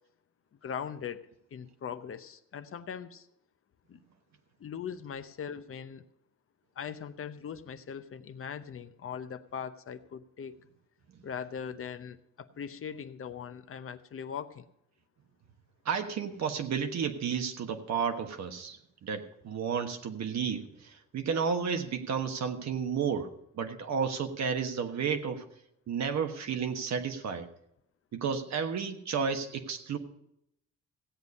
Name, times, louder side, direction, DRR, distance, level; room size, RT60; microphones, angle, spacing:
voice 1, 0.6-1.2 1.5-3.3 3.9-4.0 4.6-6.0 6.8-10.6 11.2-14.6, left 7 dB, 45° left, 10 dB, 0.8 m, -40 dB
voice 2, 15.8-25.4 25.9-27.5 28.1-30.0, right 6 dB, 65° right, 6 dB, 1.4 m, -32 dB
16.0 x 8.1 x 5.3 m, 0.77 s
cardioid pair, 90°, 30 cm